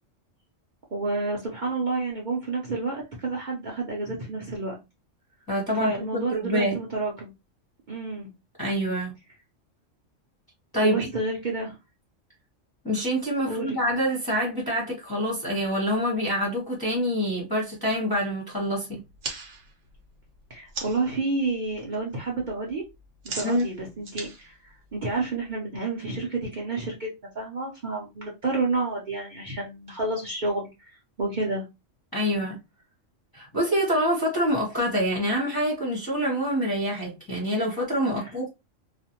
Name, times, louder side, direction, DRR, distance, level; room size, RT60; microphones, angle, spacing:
voice 1, 0.9-4.7 5.7-7.3 7.9-8.3 10.8-11.8 13.5-13.8 20.5-22.8 23.3-27.1 27.3-31.6, right 3 dB, 50° right, 0.6 m, -30 dB
voice 2, 5.5-6.8 8.6-9.1 10.7-11.1 12.8-19.0 23.4-23.7 32.1-32.6 33.3-38.5, equal, 20° left, 0.7 m, -26 dB
sound 1, 19.0-21.1 21.5-22.0 22.2-25.5, right 4 dB, 65° right, 1.0 m, -39 dB
2.4 x 2.1 x 2.7 m
omnidirectional pair, 1.3 m